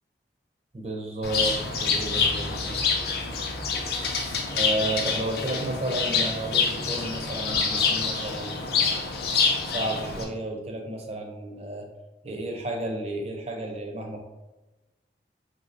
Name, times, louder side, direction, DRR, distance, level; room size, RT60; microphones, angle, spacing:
voice 1, 0.7-2.8 4.5-9.0 9.6-11.9 12.2-14.2, right 1 dB, 35° right, 2 dB, 0.5 m, -32 dB
Bird, 1.2-10.2, left 5 dB, 60° left, 0.5 m, -26 dB
4.2 x 2.6 x 2.5 m, 1.1 s
head